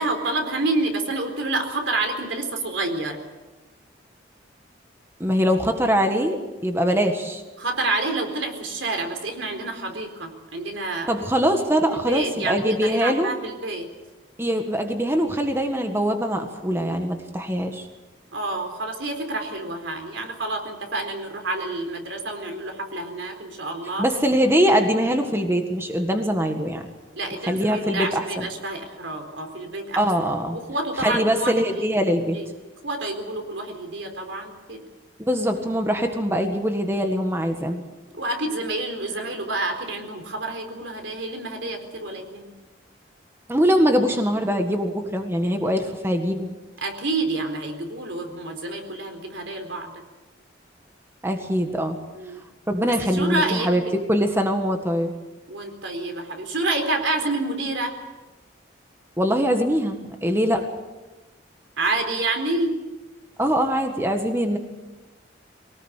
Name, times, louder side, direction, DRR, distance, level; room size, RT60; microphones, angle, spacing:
voice 1, 0.0-3.2 7.6-11.2 11.9-13.9 18.3-24.1 27.1-30.0 30.5-31.9 32.3-32.5 32.8-34.8 38.1-42.5 46.8-50.0 52.1-52.4 53.1-53.7 55.5-57.9 61.8-62.8, right 2 dB, 85° right, 5 dB, 4.2 m, -28 dB
voice 2, 5.2-7.4 11.1-13.3 14.4-17.9 24.0-26.8 27.5-28.4 30.0-30.6 31.0-32.4 35.3-37.8 43.5-46.5 51.2-52.0 52.7-55.1 59.2-60.7 63.4-64.6, equal, 15° right, 5 dB, 1.6 m, -22 dB
23.5 x 18.5 x 8.3 m, 1.2 s
head